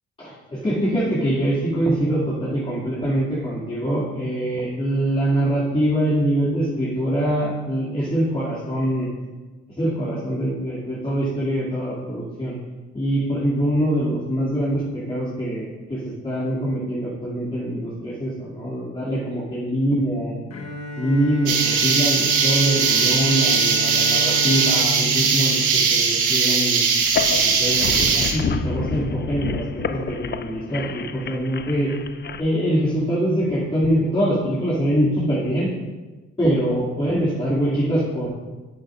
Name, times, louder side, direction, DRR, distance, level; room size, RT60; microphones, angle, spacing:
voice 1, 0.2-9.1 9.8-12.5 12.9-20.3 21.0-26.8 27.3-29.6 29.9-31.9 32.4-35.7 36.4-38.3, right 1 dB, 20° left, -8 dB, 2.6 m, -24 dB
Bowed string instrument, 20.5-26.7, left 1 dB, 60° left, 1.2 m, -32 dB
sound 1, 21.5-28.3, right 5 dB, 85° right, 1.3 m, -20 dB
sound 2, 27.0-32.4, left 6 dB, 35° left, 0.5 m, -29 dB
10.0 x 9.1 x 2.6 m, 1.2 s
cardioid pair, 90°, 30 cm